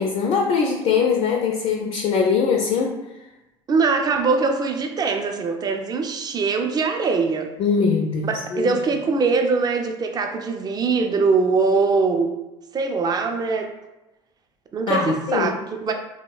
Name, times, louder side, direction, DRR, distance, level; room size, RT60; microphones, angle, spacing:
voice 1, 0.0-2.9 7.6-8.7 14.9-15.5, left 5 dB, 45° left, 0 dB, 0.4 m, -21 dB
voice 2, 3.7-7.5 8.2-12.3 12.7-13.7 14.7-15.9, right 4 dB, 25° right, 4 dB, 0.4 m, -22 dB
3.1 x 2.0 x 2.3 m, 1.0 s
hypercardioid pair, 65°, 15 cm